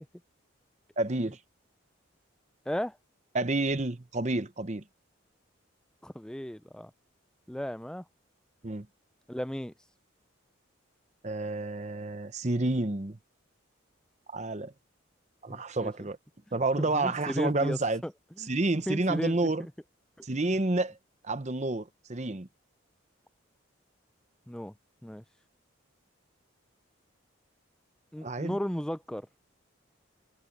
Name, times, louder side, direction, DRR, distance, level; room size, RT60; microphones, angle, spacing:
voice 1, 1.0-1.4 3.3-4.8 8.6-8.9 11.2-13.2 14.3-14.7 15.4-16.2 16.5-18.0 18.4-19.7 20.2-21.0 21.2-22.5 28.2-28.6, right 2 dB, 35° right, 0.9 m, -29 dB
voice 2, 2.7-3.0 6.0-6.9 7.5-8.0 9.3-9.7 15.5-15.9 16.8-18.1 18.4-19.7 24.5-24.7 25.0-25.2 28.1-29.3, equal, 5° left, 0.4 m, -35 dB
head